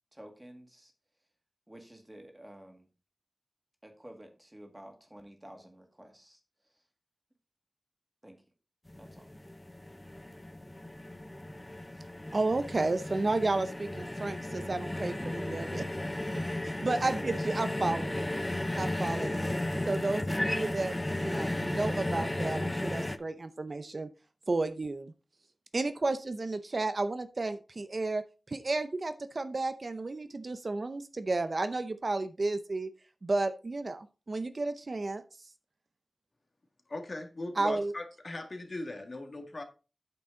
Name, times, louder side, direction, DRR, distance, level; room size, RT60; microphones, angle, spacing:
voice 1, 0.1-0.9 1.7-2.9 3.8-6.4 8.2-8.4 9.0-9.3, right 1 dB, 15° right, 2.1 m, -51 dB
sound 1, 8.9-23.2, left 1 dB, 20° left, 0.7 m, -34 dB
voice 2, 12.3-15.9 16.6-18.2 18.8-19.6 19.8-24.1 24.5-25.1 25.7-32.9 33.2-35.2 37.6-37.9, right 3 dB, 50° right, 0.6 m, -32 dB
voice 3, 36.9-39.6, left 2 dB, 50° left, 1.8 m, -39 dB
8.5 x 6.7 x 3.8 m
wide cardioid pair, 95°, 0 cm